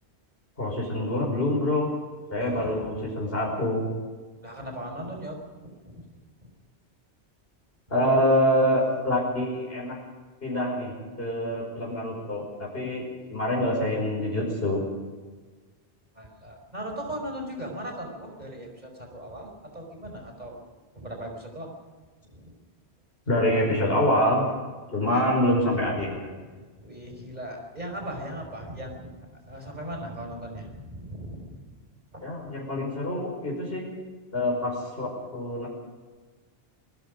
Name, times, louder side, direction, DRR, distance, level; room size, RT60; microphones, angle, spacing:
voice 1, 0.6-1.9 2.3-3.9 7.9-10.0 10.4-14.8 23.3-24.4 24.9-26.3 32.2-33.8 34.3-35.7, left 1 dB, 60° left, -3 dB, 5.5 m, -26 dB
voice 2, 2.4-2.9 4.4-5.4 5.6-6.0 6.4-6.5 16.2-20.6 21.0-21.8 22.2-22.6 25.0-25.5 26.0-26.2 26.8-31.6 32.1-32.3, right 1 dB, 40° right, 2 dB, 5.3 m, -38 dB
25.5 x 20.0 x 5.2 m, 1.4 s
omnidirectional pair, 1.1 m